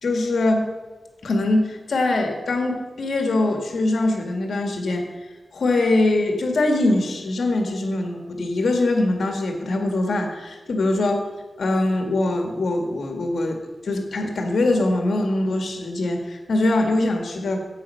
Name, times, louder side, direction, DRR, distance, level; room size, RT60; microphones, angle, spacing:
voice 1, 0.0-0.7 1.2-5.1 5.5-11.3 11.6-17.6, left 2 dB, 75° left, 3 dB, 1.9 m, -22 dB
11.0 x 8.8 x 5.6 m, 1.2 s
wide cardioid pair, 145°, 0 cm